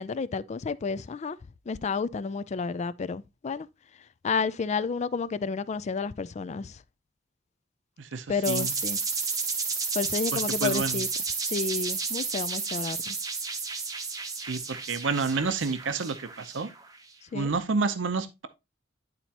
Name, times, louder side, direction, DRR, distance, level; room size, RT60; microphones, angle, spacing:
voice 1, 0.0-1.4 1.7-3.7 4.2-6.8 8.3-9.0 9.9-11.1 11.4-13.2 17.3-17.5, left 5 dB, 35° left, 0.4 m, -31 dB
voice 2, 8.0-8.7 10.3-11.0 14.5-16.7 17.3-18.5, right 4 dB, 75° right, 0.7 m, -29 dB
sound 1, 8.4-17.0, right 4 dB, 20° right, 0.8 m, -32 dB
11.0 x 4.1 x 2.9 m
head